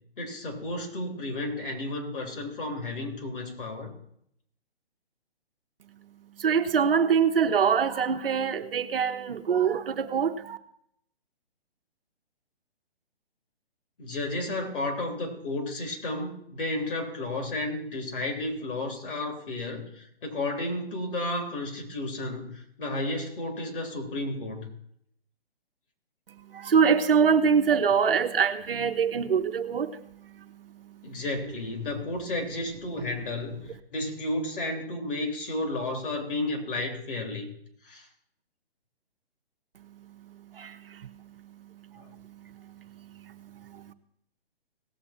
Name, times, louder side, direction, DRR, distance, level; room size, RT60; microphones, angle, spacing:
voice 1, 0.2-3.9 14.0-24.7 31.0-37.5 37.8-38.1 42.0-42.1, left 2 dB, 55° left, 3 dB, 3.4 m, -32 dB
voice 2, 6.4-10.6 26.5-30.0 40.5-41.1 42.1-42.7 43.1-43.9, right 6 dB, 65° right, 7 dB, 1.1 m, -24 dB
18.0 x 7.5 x 4.4 m, 0.70 s
figure-of-eight pair, 140°, 31 cm